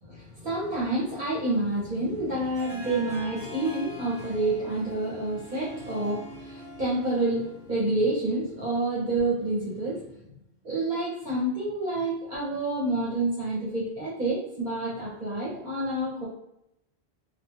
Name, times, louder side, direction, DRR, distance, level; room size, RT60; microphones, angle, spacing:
voice 1, 0.0-10.1 10.6-16.3, right 2 dB, 50° right, -7 dB, 0.9 m, -28 dB
Harp, 2.5-8.0, left 1 dB, 20° left, 1.2 m, -43 dB
2.9 x 2.4 x 2.4 m, 0.80 s
omnidirectional pair, 1.1 m